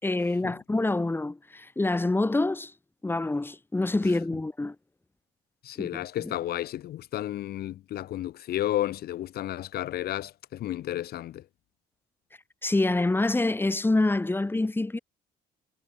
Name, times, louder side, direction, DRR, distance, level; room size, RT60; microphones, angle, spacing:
voice 1, 0.0-2.7 3.0-4.8 5.8-6.3 12.6-15.0, left 2 dB, 10° left, 5.5 m, -26 dB
voice 2, 5.6-11.4, left 13 dB, 65° left, 2.6 m, -32 dB
cardioid pair, 110°, 17 cm